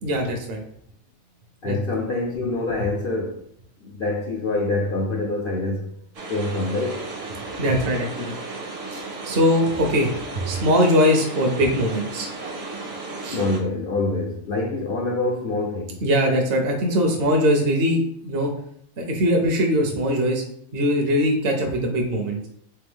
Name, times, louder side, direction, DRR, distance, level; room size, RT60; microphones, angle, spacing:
voice 1, 0.0-0.6 1.6-1.8 7.6-8.3 8.9-10.1 10.4-12.3 13.2-13.4 16.0-18.5 19.0-20.4 20.7-22.5, equal, 55° right, 0.8 m, -21 dB
voice 2, 1.6-3.4 3.8-5.8 6.3-7.0 13.3-16.0, left 2 dB, 60° left, 0.6 m, -25 dB
sound 1, 6.1-13.6, right 3 dB, 70° right, 1.2 m, -34 dB
3.4 x 3.3 x 3.5 m
omnidirectional pair, 1.4 m